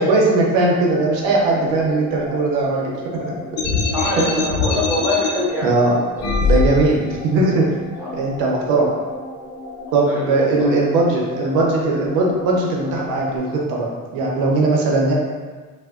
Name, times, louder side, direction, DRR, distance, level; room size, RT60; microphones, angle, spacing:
voice 1, 0.0-3.3 4.2-4.3 5.6-5.9 6.4-7.7 8.1-8.9 9.9-15.1, right 2 dB, 85° right, -2 dB, 0.7 m, -19 dB
sound 1, 0.9-13.4, left 1 dB, 25° left, 1.0 m, -35 dB
sound 2, 3.6-5.3 6.2-7.1, left 4 dB, 70° left, 0.6 m, -21 dB
voice 2, 3.8-5.8 6.2-6.4 8.0-8.1 10.0-10.7, left 1 dB, 5° right, -7 dB, 0.5 m, -25 dB
2.7 x 2.1 x 2.3 m, 1.4 s
supercardioid pair, 85°, 36 cm